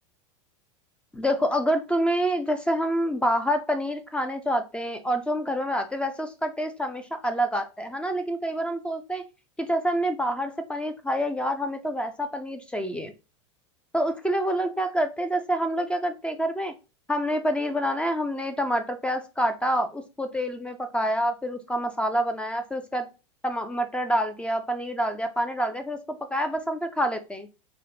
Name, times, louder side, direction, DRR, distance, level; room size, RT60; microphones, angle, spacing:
voice 1, 1.1-9.2 9.6-13.1 13.9-16.7 17.1-23.1 23.4-27.5, equal, 5° left, 8 dB, 0.3 m, -27 dB
2.9 x 2.0 x 2.8 m, 0.30 s
hypercardioid pair, 95°, 16 cm